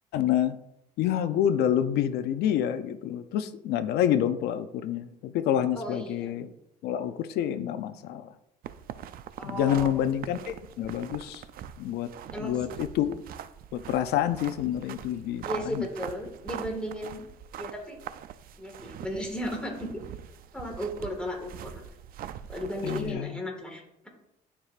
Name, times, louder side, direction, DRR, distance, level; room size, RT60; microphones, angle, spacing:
voice 1, 0.1-0.6 1.0-6.5 6.8-8.3 9.4-11.4 11.8-13.2 13.7-15.9 22.8-23.4, left 10 dB, 80° left, 10 dB, 0.5 m, -28 dB
voice 2, 5.7-6.3 9.4-10.0 10.8-10.9 12.3-12.8 15.4-17.2 17.6-18.0 18.6-19.9 20.5-21.8 22.5-24.1, equal, 5° left, 0 dB, 1.7 m, -35 dB
sound 1, 8.6-23.1, right 10 dB, 60° right, 0.4 m, -42 dB
11.5 x 4.8 x 2.4 m, 0.80 s
cardioid pair, 110°, 17 cm